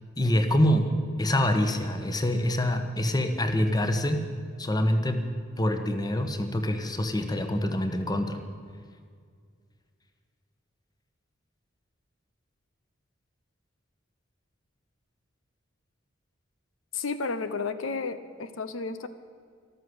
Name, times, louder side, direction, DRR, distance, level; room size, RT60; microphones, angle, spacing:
voice 1, 0.2-0.8 1.2-4.2 4.6-5.2 5.6-8.4, left 1 dB, 20° left, 7 dB, 1.3 m, -25 dB
voice 2, 16.9-19.1, left 4 dB, 85° left, 12 dB, 0.8 m, -32 dB
13.5 x 13.0 x 7.9 m, 2.1 s
head